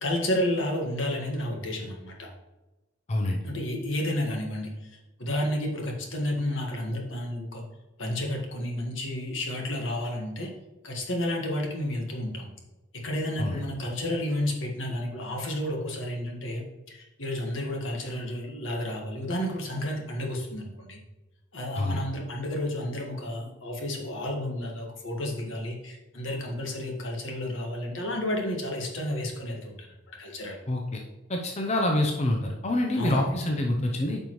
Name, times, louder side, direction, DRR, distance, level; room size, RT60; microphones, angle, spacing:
voice 1, 0.0-2.3 3.4-7.6 8.0-10.5 10.8-12.5 13.0-21.0 21.5-29.9 30.2-30.6 32.9-33.4, left 1 dB, 75° left, 1 dB, 1.6 m, -31 dB
voice 2, 30.7-31.0 31.3-34.2, left 1 dB, 35° left, 1 dB, 0.6 m, -26 dB
9.2 x 5.4 x 3.1 m, 1.1 s
head